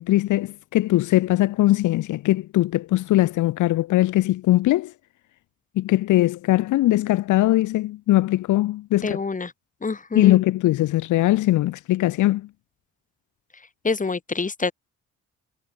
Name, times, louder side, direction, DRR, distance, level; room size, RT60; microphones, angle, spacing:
voice 1, 0.0-4.9 5.8-9.2 10.1-12.5, left 16 dB, 80° left, 0.9 m, -20 dB
voice 2, 9.0-9.5 9.8-10.4 13.8-14.7, left 4 dB, 25° left, 2.8 m, -26 dB
cardioid pair, 90°, 30 cm